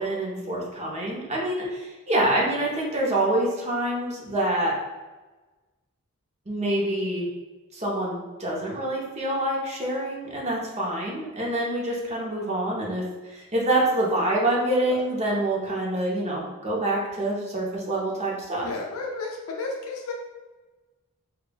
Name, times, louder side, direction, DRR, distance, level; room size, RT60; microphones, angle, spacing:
voice 1, 0.0-4.7 6.5-7.3 7.7-18.7, right 1 dB, 30° right, -3 dB, 0.7 m, -26 dB
voice 2, 18.6-20.1, left 3 dB, 75° left, 0 dB, 0.4 m, -32 dB
5.0 x 2.3 x 2.2 m, 1.2 s
head